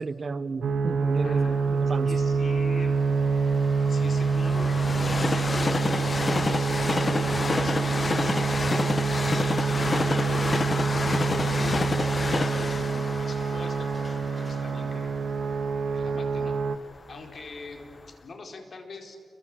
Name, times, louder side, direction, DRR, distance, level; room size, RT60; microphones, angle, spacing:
voice 1, 0.0-2.1, right 4 dB, 50° right, 0.9 m, -32 dB
sound 1, 0.6-16.8, right 5 dB, 85° right, 1.4 m, -26 dB
voice 2, 1.2-3.3 3.9-10.4 10.9-12.1 12.4-15.1 15.9-16.6 17.1-19.2, left 3 dB, 55° left, 4.4 m, -43 dB
Train, 1.4-17.4 17.9-18.0, left 3 dB, 35° left, 1.0 m, -30 dB
30.0 x 23.5 x 7.5 m
cardioid pair, 90°, 0 cm